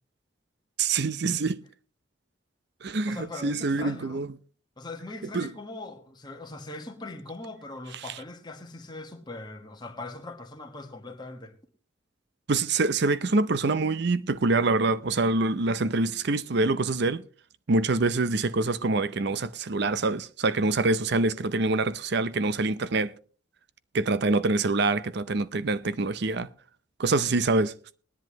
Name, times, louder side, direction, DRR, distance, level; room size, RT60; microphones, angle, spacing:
voice 1, 0.8-1.6 2.8-4.3 5.3-5.5 12.5-17.2 17.7-23.1 23.9-26.5 27.0-27.7, right 3 dB, 55° right, 0.6 m, -25 dB
voice 2, 3.0-4.2 4.8-11.6, left 2 dB, 20° left, 1.5 m, -41 dB
20.0 x 10.5 x 3.1 m
head